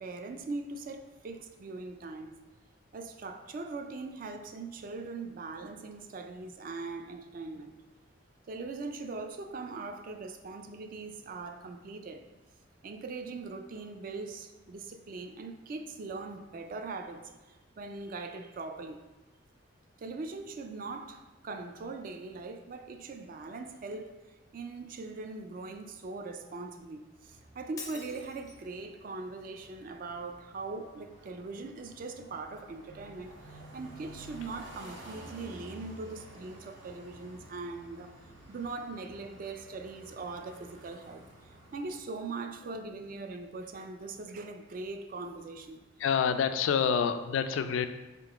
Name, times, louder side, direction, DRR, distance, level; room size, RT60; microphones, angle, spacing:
voice 1, 0.0-2.4 2.9-7.8 8.5-12.3 12.8-19.0 20.0-24.2 24.5-38.2 38.5-45.8, right 3 dB, 45° right, 0.3 m, -41 dB
sound 1, 27.2-42.0, right 1 dB, 80° right, 1.0 m, -52 dB
Shatter, 27.8-28.8, left 4 dB, 20° left, 0.4 m, -45 dB
voice 2, 46.0-47.9, left 7 dB, 85° left, 0.3 m, -27 dB
3.8 x 3.7 x 3.5 m
head